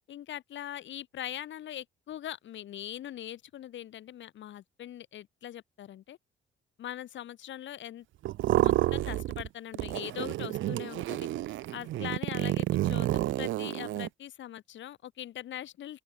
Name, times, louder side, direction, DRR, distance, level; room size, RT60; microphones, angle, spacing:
voice 1, 0.1-6.2 6.8-8.1 8.5-16.0, left 12 dB, 70° left, 1.7 m, -42 dB
sound 1, 8.2-9.5 9.7-14.1, right 15 dB, 75° right, 0.6 m, -29 dB
open air
cardioid pair, 90°, 20 cm